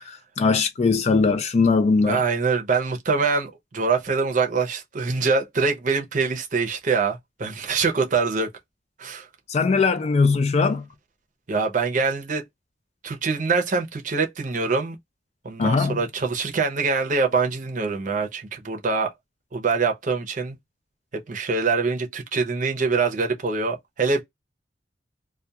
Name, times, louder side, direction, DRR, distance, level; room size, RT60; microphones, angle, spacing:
voice 1, 0.0-2.2 9.5-10.8 15.6-16.0, left 4 dB, 40° left, 0.3 m, -20 dB
voice 2, 2.0-8.5 9.0-9.3 11.5-12.4 13.0-15.0 15.4-19.1 19.5-20.6 21.1-24.2, right 4 dB, 45° right, 0.6 m, -24 dB
2.3 x 2.2 x 2.7 m
head